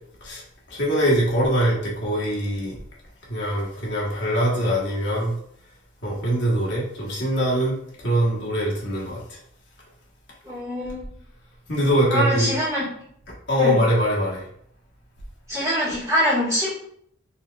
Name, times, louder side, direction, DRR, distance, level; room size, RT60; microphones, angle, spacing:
voice 1, 0.7-2.8 3.3-5.3 6.0-7.8 8.0-9.4 11.7-12.5 13.5-14.4, equal, 55° left, -4 dB, 1.1 m, -22 dB
voice 2, 10.4-11.1 12.1-12.8 13.6-13.8 15.5-16.7, equal, 15° right, -8 dB, 1.6 m, -24 dB
4.2 x 3.5 x 2.3 m, 0.67 s
head